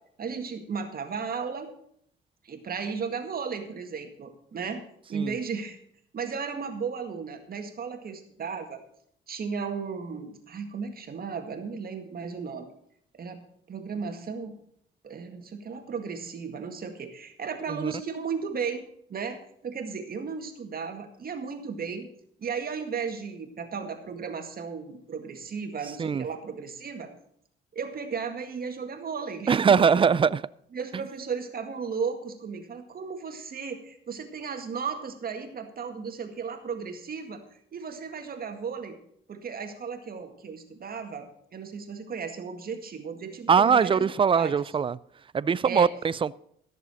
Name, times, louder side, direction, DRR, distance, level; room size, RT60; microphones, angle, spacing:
voice 1, 0.2-1.7 2.4-4.8 5.1-5.8 6.1-8.8 9.3-12.7 13.1-13.4 13.7-14.6 15.0-18.8 19.1-22.1 22.4-27.1 27.7-29.9 30.7-37.5 37.7-39.0 39.3-44.6 45.6-45.9, right 5 dB, 50° right, 1.9 m, -35 dB
voice 2, 29.5-30.4 43.5-45.0 45.3-46.3, right 6 dB, 25° right, 0.4 m, -22 dB
14.0 x 6.7 x 6.3 m
cardioid pair, 90°, 20 cm